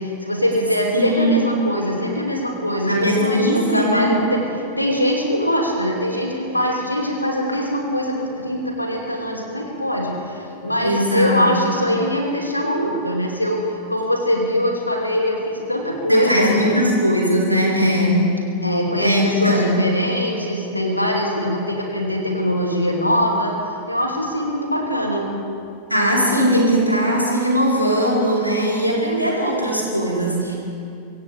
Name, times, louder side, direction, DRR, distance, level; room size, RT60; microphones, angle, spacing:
voice 1, 0.0-4.4 4.8-16.8 18.6-23.6 23.9-25.3, equal, 85° left, 0 dB, 2.7 m, -22 dB
voice 2, 0.9-1.4 2.9-4.2 10.8-11.8 16.1-18.2 19.0-19.8 25.9-30.5, equal, 90° right, -4 dB, 4.1 m, -19 dB
25.0 x 16.0 x 3.6 m, 2.4 s
figure-of-eight pair, 90°, 0 cm